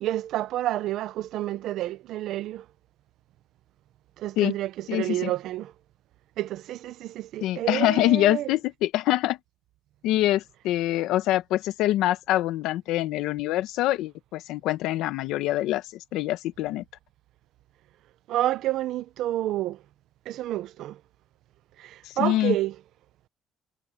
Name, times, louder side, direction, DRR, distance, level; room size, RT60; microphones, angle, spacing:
voice 1, 0.0-2.6 4.2-5.7 6.4-8.5 18.3-19.8 20.3-21.0 21.8-22.7, right 14 dB, 75° right, 0.9 m, -29 dB
voice 2, 4.9-5.3 7.4-9.4 10.0-15.8 16.1-16.8 22.1-22.5, left 15 dB, 90° left, 1.4 m, -25 dB
cardioid pair, 130°, 0 cm